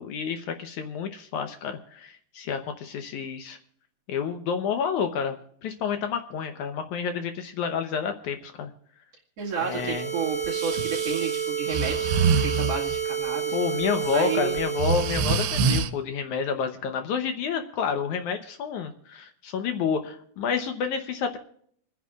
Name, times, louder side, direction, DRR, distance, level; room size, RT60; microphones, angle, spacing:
voice 1, 0.0-3.6 4.1-5.4 5.6-8.7 9.6-10.1 13.5-21.4, left 6 dB, 75° left, 6 dB, 1.8 m, -29 dB
voice 2, 9.4-12.1 12.4-13.6 14.1-14.6, right 6 dB, 45° right, -2 dB, 2.7 m, -31 dB
sound 1, 9.5-15.7, right 7 dB, 55° left, 5.0 m, -30 dB
Breathing, 10.5-13.0 13.8-14.2 14.6-15.9, right 5 dB, 85° right, 2.9 m, -26 dB
28.5 x 10.0 x 2.4 m, 0.63 s
omnidirectional pair, 4.5 m